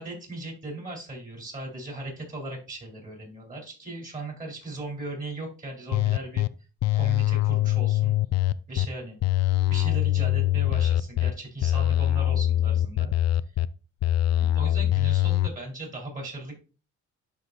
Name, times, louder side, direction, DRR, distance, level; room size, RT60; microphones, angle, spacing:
voice 1, 0.0-6.4 6.9-8.2 8.7-9.2 9.7-13.1 14.4-16.5, right 1 dB, 25° right, -1 dB, 4.2 m, -37 dB
sound 1, 5.9-6.5 6.8-8.9 9.2-11.3 11.6-13.7 14.0-15.5, left 13 dB, 60° left, 0.4 m, -23 dB
12.0 x 4.1 x 2.8 m, 0.34 s
cardioid pair, 90°, 30 cm